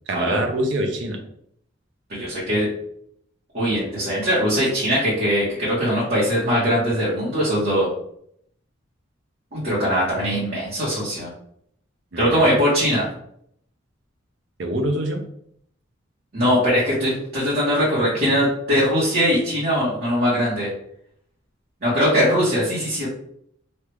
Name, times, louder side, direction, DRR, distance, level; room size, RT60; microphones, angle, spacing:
voice 1, 0.1-1.2 12.1-12.5 14.6-15.2, right 1 dB, 70° right, 4 dB, 0.6 m, -25 dB
voice 2, 2.1-2.7 3.5-7.9 9.5-11.3 12.2-13.1 16.3-20.7 21.8-23.1, equal, 50° right, -9 dB, 1.1 m, -21 dB
3.2 x 2.4 x 3.1 m, 0.69 s
head